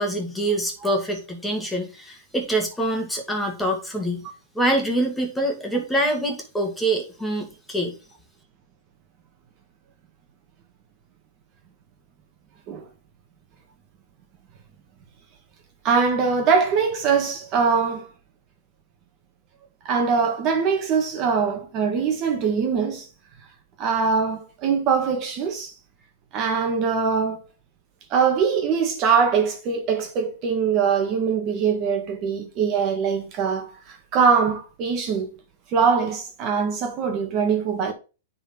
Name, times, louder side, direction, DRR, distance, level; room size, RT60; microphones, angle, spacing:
voice 1, 0.0-4.2 4.6-8.0, right 1 dB, 5° left, 2.1 m, -25 dB
voice 2, 15.8-18.1 19.8-23.0 23.8-25.7 26.3-27.4 28.1-35.3 35.7-37.9, right 6 dB, 35° right, 1.6 m, -22 dB
9.7 x 4.2 x 4.4 m
hypercardioid pair, 140°, 0 cm